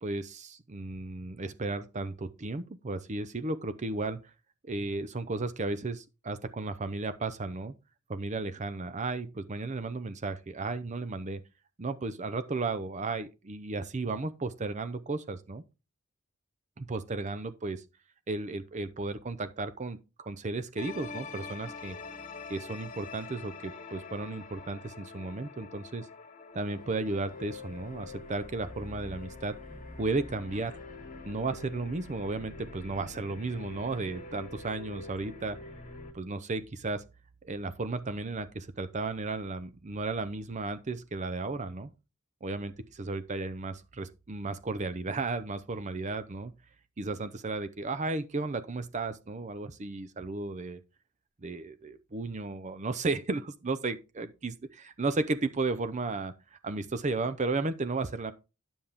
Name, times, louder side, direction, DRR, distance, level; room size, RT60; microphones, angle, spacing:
voice 1, 0.0-4.2 4.6-7.7 8.1-11.4 11.8-15.6 16.8-17.8 18.3-22.0 22.5-26.1 26.5-29.6 30.0-30.7 31.2-35.6 36.1-37.0 37.4-41.9 42.4-46.5 47.0-50.8 51.4-58.3, right 3 dB, 35° right, 0.6 m, -34 dB
sound 1, 20.8-36.1, left 3 dB, 40° left, 1.8 m, -45 dB
10.0 x 7.0 x 3.6 m
head